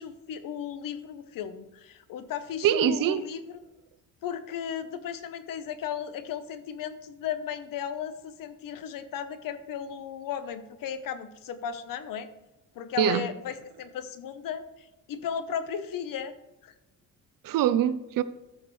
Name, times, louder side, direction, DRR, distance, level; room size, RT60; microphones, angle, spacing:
voice 1, 0.0-3.6 4.2-12.3 12.7-16.3 16.6-16.7, left 8 dB, 80° left, 0.9 m, -35 dB
voice 2, 2.6-3.2 13.0-13.2 17.4-18.2, right 10 dB, 85° right, 0.7 m, -23 dB
14.0 x 6.5 x 3.2 m
cardioid pair, 155°, 33 cm